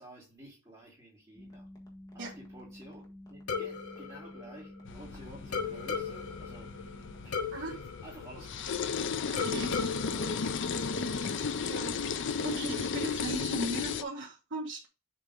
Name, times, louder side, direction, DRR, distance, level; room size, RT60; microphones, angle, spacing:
voice 1, 0.0-1.7 2.1-8.9 9.2-9.3 9.7-10.3 12.5-12.7, right 1 dB, 20° right, 3.4 m, -52 dB
sound 1, 1.3-7.4, equal, 15° left, 1.5 m, -50 dB
sound 2, 3.5-5.1 5.5-8.9 9.4-11.3, left 5 dB, 80° left, 1.1 m, -38 dB
sound 3, 4.8-14.0, left 5 dB, 55° left, 0.5 m, -34 dB
voice 2, 9.3-9.8 11.7-14.9, right 1 dB, 55° right, 1.2 m, -38 dB
7.1 x 4.3 x 3.6 m
head